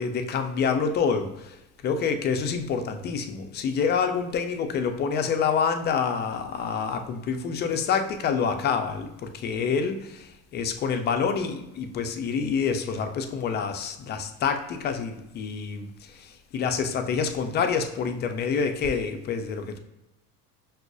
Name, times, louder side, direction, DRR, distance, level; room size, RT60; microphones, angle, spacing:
voice 1, 0.0-1.6 1.8-19.8, left 6 dB, 25° left, 6 dB, 0.4 m, -27 dB
5.8 x 2.4 x 2.4 m, 0.93 s
hypercardioid pair, 75°, 45 cm